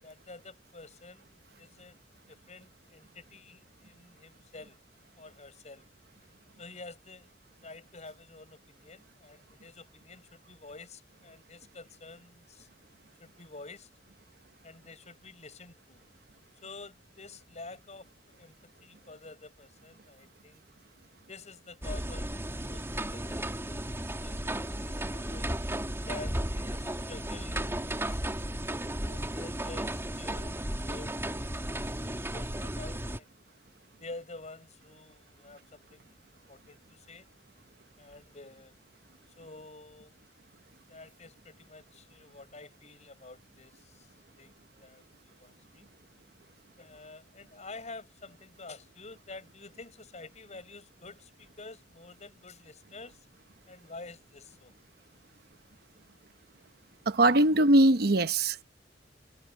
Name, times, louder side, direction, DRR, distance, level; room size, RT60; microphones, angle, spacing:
voice 1, 0.0-2.0 2.3-4.8 5.2-5.9 6.2-6.3 6.6-7.3 7.6-12.7 13.2-13.9 14.6-16.0 16.6-20.6 21.3-23.4 24.2-25.5 26.1-28.5 29.0-33.3 34.0-37.3 38.0-38.7 39.4-40.1 40.9-44.1 44.4-45.9 46.8-53.3 53.7-54.7, left 3 dB, 40° left, 7.4 m, -49 dB
sound 1, 21.8-33.2, right 1 dB, 15° right, 3.1 m, -34 dB
voice 2, 57.1-58.6, right 1 dB, 60° right, 1.0 m, -21 dB
head